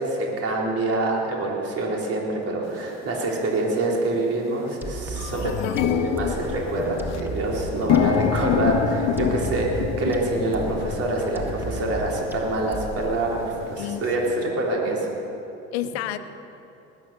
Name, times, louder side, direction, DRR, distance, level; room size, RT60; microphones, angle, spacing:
voice 1, 0.0-13.4 13.7-15.0, right 2 dB, 45° right, -2 dB, 3.8 m, -26 dB
sound 1, 2.8-2.9 3.7-3.9 4.3-4.4 4.7-14.4, left 8 dB, 55° left, 1.0 m, -27 dB
sound 2, 4.8-13.4, right 1 dB, 5° right, 1.9 m, -35 dB
voice 2, 5.4-5.9 13.8-14.4 15.7-16.2, left 12 dB, 85° left, 11 dB, 0.9 m, -31 dB
19.5 x 9.4 x 6.9 m, 2.8 s
supercardioid pair, 85°, 32 cm